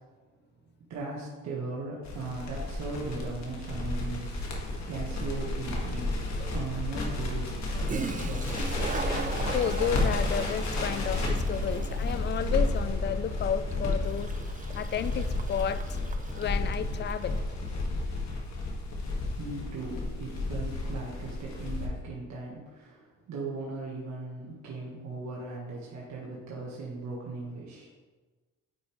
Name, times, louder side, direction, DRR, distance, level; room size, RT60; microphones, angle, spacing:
voice 1, 0.9-8.9 19.3-27.9, right 3 dB, 65° right, -4 dB, 1.4 m, -38 dB
Crackle, 2.0-21.9, left 2 dB, 65° left, 1.7 m, -32 dB
Toilet flush, 7.9-17.2, right 4 dB, 25° right, 0.6 m, -39 dB
voice 2, 9.5-14.3 14.7-15.9 16.3-17.4, left 8 dB, 35° left, 14 dB, 0.4 m, -32 dB
9.4 x 4.9 x 3.1 m, 1.3 s
cardioid pair, 90°, 30 cm